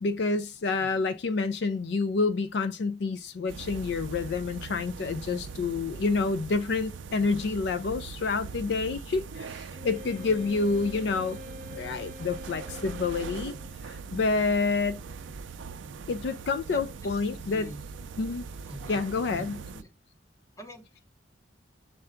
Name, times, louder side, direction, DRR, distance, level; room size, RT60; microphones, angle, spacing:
voice 1, 0.0-11.4 11.7-13.6 13.8-15.0 16.1-17.7 18.2-18.5 18.9-19.6, left 4 dB, 60° left, 0.4 m, -28 dB
sound 1, 3.5-19.8, right 5 dB, 75° right, 0.4 m, -41 dB
Wind instrument woodwind instrument, 9.7-13.8, left 3 dB, 40° right, 0.8 m, -45 dB
voice 2, 10.2-10.5 16.7-17.8 18.6-19.0 19.3-19.9 20.6-21.1, equal, 15° left, 0.7 m, -46 dB
6.6 x 2.2 x 3.6 m
head